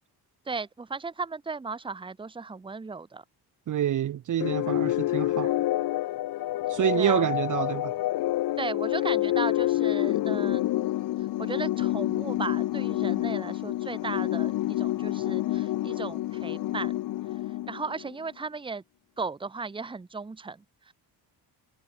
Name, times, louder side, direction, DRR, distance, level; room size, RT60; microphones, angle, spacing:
voice 1, 0.5-3.2 6.9-7.3 8.6-10.7 11.2-16.9 17.7-18.8 19.2-20.9, right 4 dB, 10° right, 1.0 m, -36 dB
voice 2, 3.7-5.5 6.7-7.9, right 11 dB, 50° right, 0.9 m, -27 dB
sound 1, 4.4-18.1, left 15 dB, 60° left, 0.5 m, -28 dB
cardioid pair, 170°, 41 cm